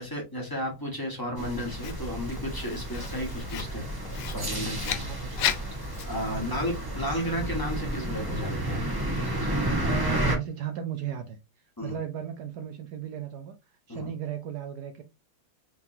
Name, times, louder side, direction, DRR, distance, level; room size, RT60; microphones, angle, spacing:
voice 1, 0.0-3.9 4.3-5.0 6.1-8.8 11.8-12.0 13.9-14.1, equal, 10° left, 1.3 m, -33 dB
sound 1, 1.4-10.3, right 1 dB, 15° right, 0.8 m, -31 dB
Writing, 1.8-6.8, left 10 dB, 70° left, 1.2 m, -36 dB
voice 2, 4.9-5.5 6.4-6.7 9.8-11.4 11.8-13.6 13.9-15.0, right 9 dB, 70° right, 1.0 m, -36 dB
4.7 x 3.6 x 2.7 m
omnidirectional pair, 2.2 m